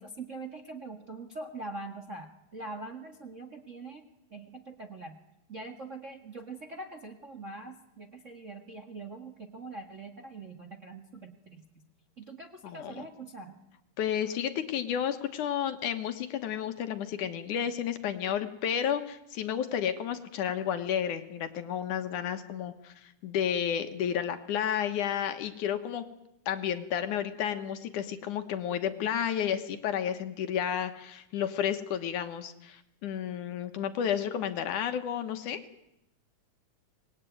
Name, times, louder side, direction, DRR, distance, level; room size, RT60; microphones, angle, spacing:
voice 1, 0.0-4.0 4.3-5.2 5.5-11.8 12.2-13.6, right 3 dB, 35° right, 5 dB, 1.4 m, -43 dB
voice 2, 12.6-13.0 14.0-26.1 26.5-35.6, left 9 dB, 70° left, 9 dB, 2.7 m, -31 dB
25.5 x 20.5 x 9.4 m, 0.87 s
omnidirectional pair, 3.8 m